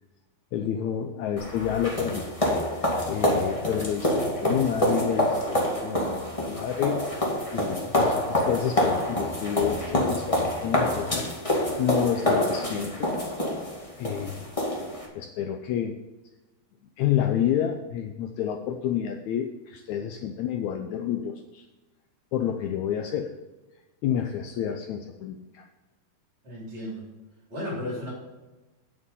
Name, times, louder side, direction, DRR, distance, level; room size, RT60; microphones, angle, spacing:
voice 1, 0.5-2.2 2.7-2.8 3.1-7.1 7.5-11.3 11.8-13.1 14.0-14.5 15.1-16.0 17.0-21.6 22.3-23.3 24.0-25.6, left 9 dB, 85° left, 5 dB, 1.6 m, -29 dB
sound 1, 1.4-15.1, left 1 dB, 20° left, 0.9 m, -27 dB
voice 2, 26.4-27.0 27.5-28.1, left 1 dB, 35° right, -5 dB, 5.1 m, -34 dB
9.7 x 8.5 x 5.5 m, 1.1 s
omnidirectional pair, 4.2 m